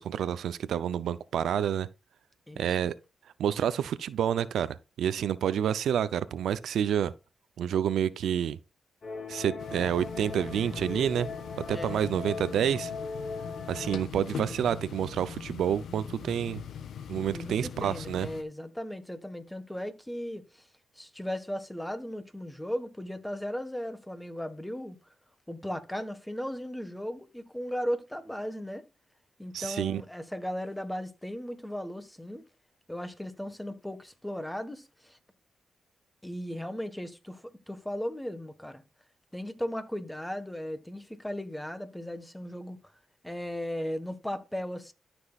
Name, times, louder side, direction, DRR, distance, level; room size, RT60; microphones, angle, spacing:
voice 1, 0.0-1.9 2.6-2.9 3.4-7.1 7.6-8.6 9.3-11.3 11.6-12.9 13.7-16.6 17.1-18.3 29.5-30.0, right 9 dB, 80° right, 0.5 m, -29 dB
voice 2, 2.5-2.8 11.7-12.1 17.3-20.7 21.0-25.0 25.5-28.8 29.4-32.5 32.9-35.2 36.2-38.8 39.3-42.8 43.2-44.9, equal, 5° left, 1.5 m, -36 dB
sound 1, 9.0-14.0, left 4 dB, 60° left, 4.6 m, -39 dB
sound 2, 9.6-18.4, left 8 dB, 80° left, 0.9 m, -41 dB
13.0 x 6.1 x 2.4 m
cardioid pair, 70°, 0 cm